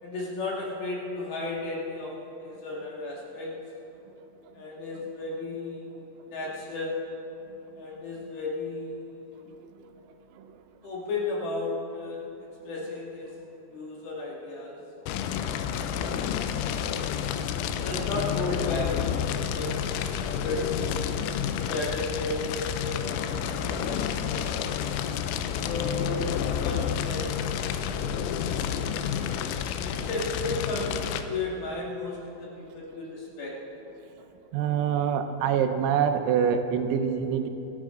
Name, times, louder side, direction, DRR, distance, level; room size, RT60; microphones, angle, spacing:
voice 1, 0.0-2.1 2.4-3.5 4.5-7.1 7.7-9.5 10.8-13.3 13.7-14.8 16.0-19.8 20.2-21.0 21.6-24.7 25.6-33.6, left 2 dB, 55° left, -4 dB, 3.5 m, -35 dB
Fire, 15.1-31.2, left 8 dB, 90° left, 3.5 m, -30 dB
voice 2, 34.5-37.5, right 8 dB, 85° right, 6 dB, 3.6 m, -25 dB
26.0 x 12.5 x 3.8 m, 2.9 s
omnidirectional pair, 6.0 m